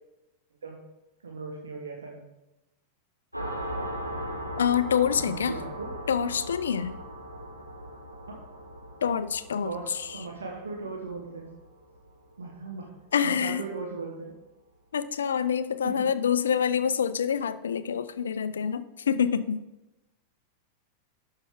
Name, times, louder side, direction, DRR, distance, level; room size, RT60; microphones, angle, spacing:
voice 1, 1.2-2.2 5.2-5.9 8.3-8.4 9.6-11.5 12.4-12.9 13.2-14.3 15.8-16.1, right 3 dB, 70° right, 0 dB, 1.2 m, -38 dB
sound 1, 3.3-12.6, equal, 90° right, 1.4 m, -39 dB
voice 2, 4.6-5.6 6.1-7.0 9.0-10.2 13.1-13.6 14.9-19.6, left 7 dB, 65° left, 14 dB, 0.4 m, -26 dB
11.5 x 5.5 x 3.6 m, 0.96 s
figure-of-eight pair, 90°, 0 cm